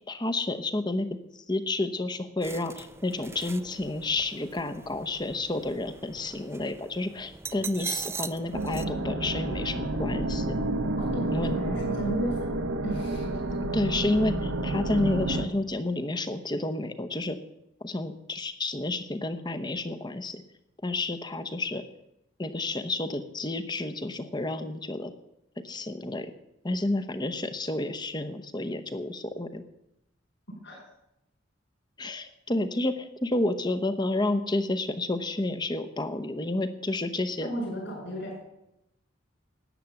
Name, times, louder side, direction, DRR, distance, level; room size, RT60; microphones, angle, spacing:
voice 1, 0.1-1.1 1.5-10.5 11.3-11.5 13.7-17.4 17.8-20.4 20.8-21.8 22.4-25.1 25.6-26.3 26.6-29.6 32.0-37.5, left 2 dB, 20° left, 9 dB, 0.8 m, -30 dB
sound 1, 2.4-8.8, right 5 dB, 10° right, 0.4 m, -41 dB
sound 2, 8.5-15.5, right 1 dB, 75° right, 1.1 m, -30 dB
voice 2, 11.0-12.5 12.8-13.3 30.6-30.8 37.4-38.4, right 1 dB, 60° left, -6 dB, 5.8 m, -33 dB
13.0 x 9.2 x 7.1 m, 0.86 s
head